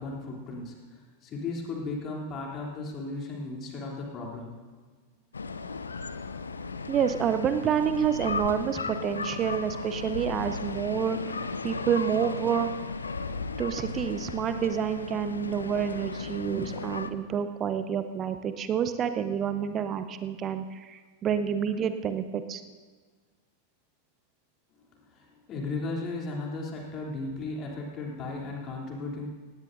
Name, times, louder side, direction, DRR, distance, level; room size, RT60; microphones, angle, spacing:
voice 1, 0.0-4.6 24.9-29.3, left 3 dB, 30° left, -2 dB, 3.1 m, -36 dB
sound 1, 5.3-17.1, left 4 dB, 75° left, 0.6 m, -35 dB
voice 2, 6.9-11.2 11.6-12.7 13.6-22.6, right 8 dB, 30° right, 10 dB, 0.7 m, -28 dB
18.0 x 17.5 x 2.7 m, 1.5 s
figure-of-eight pair, 90°, 0 cm